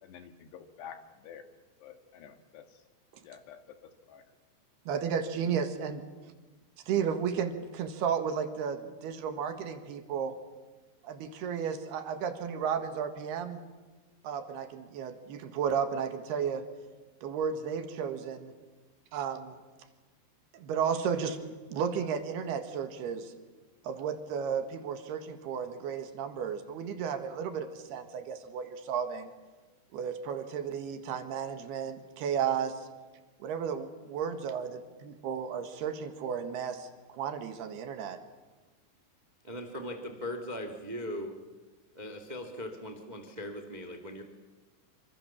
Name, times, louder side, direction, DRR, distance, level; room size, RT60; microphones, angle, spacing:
voice 1, 0.0-1.5 1.8-2.8 3.2-4.2, left 8 dB, 75° left, 8 dB, 3.8 m, -49 dB
voice 2, 4.9-6.0 6.9-10.3 11.0-13.6 14.2-16.6 17.2-18.5 19.1-19.6 20.5-21.4 21.7-23.3 23.8-29.3 29.9-32.9 33.4-33.8 34.1-38.2, right 7 dB, 70° right, 8 dB, 3.6 m, -33 dB
voice 3, 39.4-41.3 41.9-44.2, left 1 dB, 20° right, 7 dB, 1.0 m, -39 dB
27.0 x 25.5 x 7.3 m, 1.3 s
omnidirectional pair, 4.9 m